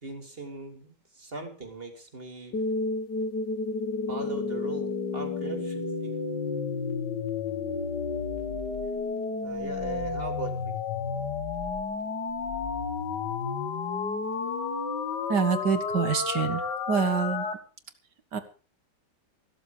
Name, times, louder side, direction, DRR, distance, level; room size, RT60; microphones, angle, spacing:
voice 1, 0.0-2.6 4.1-6.1 9.4-10.7, right 3 dB, 30° right, 5 dB, 3.4 m, -39 dB
sound 1, 2.5-17.5, left 4 dB, 70° left, 2.4 m, -31 dB
voice 2, 15.3-16.6 16.9-17.5 18.3-18.4, right 6 dB, 70° right, 10 dB, 2.3 m, -26 dB
15.5 x 13.5 x 5.1 m, 0.35 s
omnidirectional pair, 1.9 m